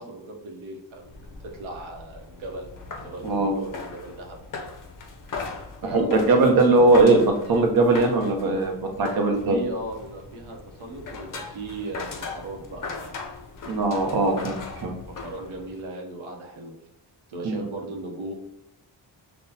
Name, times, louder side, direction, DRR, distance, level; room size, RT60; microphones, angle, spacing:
voice 1, 0.0-2.7 3.0-4.4 5.8-6.9 9.5-13.2 15.2-16.8 17.3-18.3, right 1 dB, 80° right, 1 dB, 0.9 m, -37 dB
sound 1, 0.9-15.8, left 4 dB, 45° left, 0.6 m, -39 dB
voice 2, 3.2-3.6 5.9-7.2 7.5-9.6 13.6-14.9 17.4-17.6, right 2 dB, 50° right, 2 dB, 0.8 m, -20 dB
5.5 x 2.3 x 2.7 m, 0.80 s
cardioid pair, 85°, 47 cm